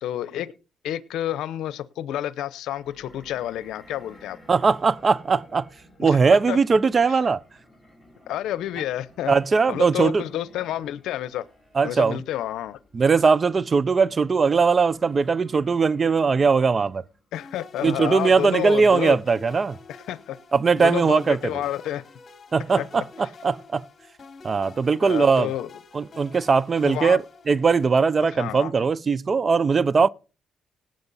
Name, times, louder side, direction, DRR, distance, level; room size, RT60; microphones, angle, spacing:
voice 1, 0.0-0.5 0.8-4.4 6.0-6.2 6.5-6.6 7.1-7.2 8.3-9.3 9.7-11.5 11.8-12.8 17.3-19.2 20.1-20.4 20.8-22.0 22.8-22.9 23.2-23.3 25.0-25.7 26.8-27.2 28.3-28.7, left 12 dB, 85° left, 0.7 m, -29 dB
sound 1, 2.7-17.3, left 1 dB, 5° right, 5.2 m, -53 dB
voice 2, 4.5-5.7 6.0-7.4 9.3-10.2 11.8-12.2 12.9-17.0 17.8-19.8 20.5-21.5 22.5-23.8 24.4-25.5 25.9-30.1, right 5 dB, 35° right, 0.5 m, -20 dB
sound 2, 17.3-28.0, left 4 dB, 40° left, 2.9 m, -47 dB
18.5 x 7.7 x 4.1 m
cardioid pair, 90°, 0 cm